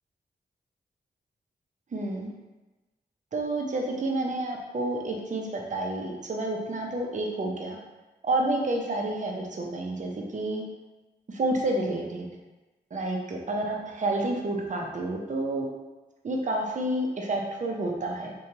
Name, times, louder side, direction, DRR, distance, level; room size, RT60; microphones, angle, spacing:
voice 1, 1.9-2.3 3.3-7.8 8.2-10.6 11.3-12.3 12.9-15.7 16.2-18.3, right 2 dB, 45° right, 0 dB, 0.5 m, -29 dB
2.7 x 2.2 x 3.0 m, 1.1 s
cardioid pair, 45°, 18 cm